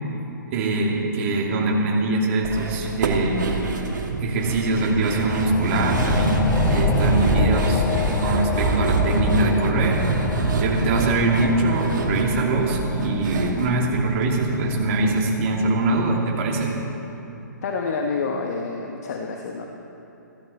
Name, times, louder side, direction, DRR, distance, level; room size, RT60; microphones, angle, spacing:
voice 1, 0.5-3.4 4.1-6.4 6.7-7.9 8.2-10.1 10.6-16.7, right 2 dB, 40° right, -2 dB, 2.8 m, -23 dB
sound 1, 2.4-14.7 15.0-15.1 15.5-15.6, right 3 dB, 70° right, 2.4 m, -25 dB
sound 2, 4.8-16.1, left 8 dB, 15° left, 0.4 m, -30 dB
voice 2, 17.6-19.6, left 4 dB, 55° left, 2 dB, 1.3 m, -28 dB
15.5 x 15.0 x 4.3 m, 2.9 s
hypercardioid pair, 140°, 10 cm